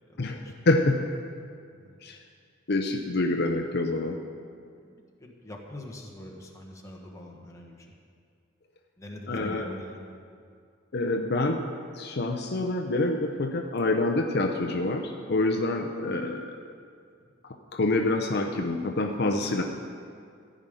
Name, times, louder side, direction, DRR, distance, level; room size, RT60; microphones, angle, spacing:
voice 1, 0.2-1.0 2.0-2.2 2.7-4.2 9.3-9.7 10.9-11.6 11.9-16.6 17.4-19.6, left 2 dB, 55° left, 3 dB, 0.7 m, -27 dB
voice 2, 5.2-7.8 9.0-10.0, left 1 dB, 15° left, -1 dB, 1.4 m, -43 dB
15.0 x 5.2 x 8.9 m, 2.2 s
head